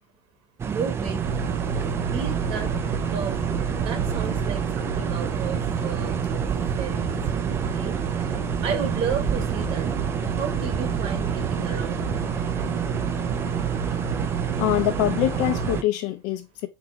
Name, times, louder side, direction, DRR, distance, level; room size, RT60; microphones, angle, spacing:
sound 1, 0.6-15.8, right 7 dB, 20° right, 0.4 m, -28 dB
voice 1, 0.6-1.2 2.0-3.5 3.7-6.4 6.8-7.0 7.7-8.0 8.6-9.9 10.2-12.1, right 6 dB, 50° right, 1.4 m, -33 dB
sound 2, 1.2-15.8, right 6 dB, 85° right, 1.2 m, -31 dB
voice 2, 14.6-16.7, left 13 dB, 60° left, 0.9 m, -24 dB
3.8 x 3.0 x 3.7 m
supercardioid pair, 140°, 12 cm